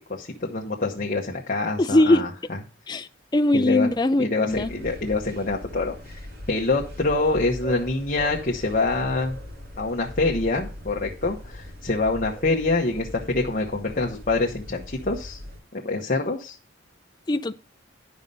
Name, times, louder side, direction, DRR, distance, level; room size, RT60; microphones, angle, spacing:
voice 1, 0.1-2.6 3.5-3.9 4.2-6.2 6.5-9.4 9.8-15.4 15.7-16.6, left 3 dB, 40° left, 1.1 m, -25 dB
voice 2, 1.8-2.3 2.9-4.7 17.3-17.5, left 1 dB, 20° left, 0.4 m, -21 dB
sound 1, 4.5-15.6, equal, 50° right, 3.6 m, -39 dB
11.0 x 5.4 x 5.4 m
head